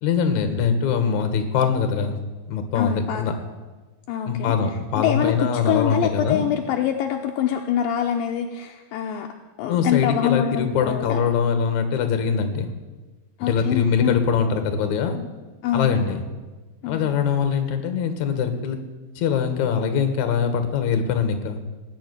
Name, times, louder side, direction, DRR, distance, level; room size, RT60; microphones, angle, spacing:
voice 1, 0.0-2.2 2.5-3.3 4.3-6.4 9.7-12.7 13.4-15.2 15.7-16.2 16.9-18.8 19.2-21.6, left 6 dB, 60° left, 7 dB, 2.5 m, -23 dB
voice 2, 2.7-3.4 4.1-4.6 5.0-9.3 9.6-11.3 13.4-14.2 15.6-16.3 16.8-17.1, left 9 dB, 75° left, 3 dB, 2.4 m, -25 dB
19.0 x 6.8 x 9.5 m, 1.2 s
omnidirectional pair, 4.3 m